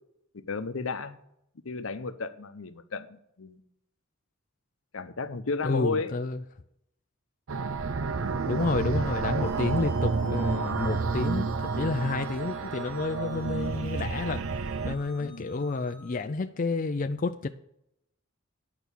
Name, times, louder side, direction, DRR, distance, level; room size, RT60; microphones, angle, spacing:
voice 1, 0.3-1.2 1.6-3.6 4.9-6.1 15.2-15.5, left 4 dB, 80° left, 0.8 m, -33 dB
voice 2, 5.6-6.4 8.4-14.5 14.8-17.5, left 3 dB, 40° left, 0.4 m, -30 dB
sound 1, 7.5-15.0, right 4 dB, 75° right, 0.6 m, -30 dB
sound 2, 9.4-16.2, right 2 dB, 5° right, 4.1 m, -52 dB
9.2 x 5.9 x 8.3 m
head